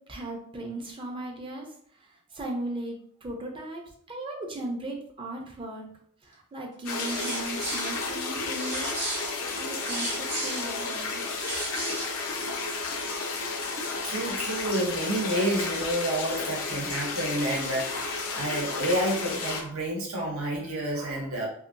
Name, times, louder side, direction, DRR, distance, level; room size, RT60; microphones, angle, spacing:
voice 1, 0.0-5.9 6.2-8.9 9.5-11.2, right 1 dB, 25° right, 0 dB, 0.5 m, -37 dB
sound 1, 6.9-19.6, left 4 dB, 70° left, 0.5 m, -32 dB
sound 2, 7.0-8.0 8.5-10.7 11.2-12.1, right 2 dB, 45° right, 0.9 m, -34 dB
voice 2, 14.0-21.5, right 1 dB, 80° right, -2 dB, 0.9 m, -29 dB
2.7 x 2.6 x 2.6 m, 0.63 s
head